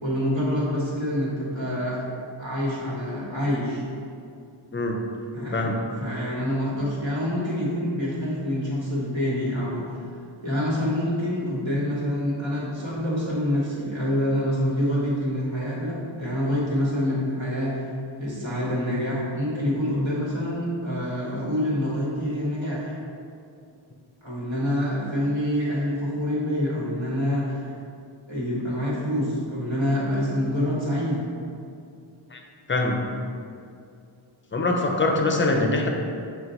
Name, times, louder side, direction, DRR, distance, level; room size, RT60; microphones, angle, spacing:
voice 1, 0.0-2.0 2.4-3.8 5.3-9.8 10.4-17.8 18.2-23.0 24.2-27.6 28.3-31.2 35.4-35.8, equal, 70° right, -6 dB, 1.3 m, -26 dB
voice 2, 5.5-5.8 32.3-32.4 32.7-33.1 34.5-35.9, left 2 dB, 25° left, 2 dB, 0.5 m, -23 dB
5.7 x 2.3 x 3.9 m, 2.4 s
wide cardioid pair, 45°, 48 cm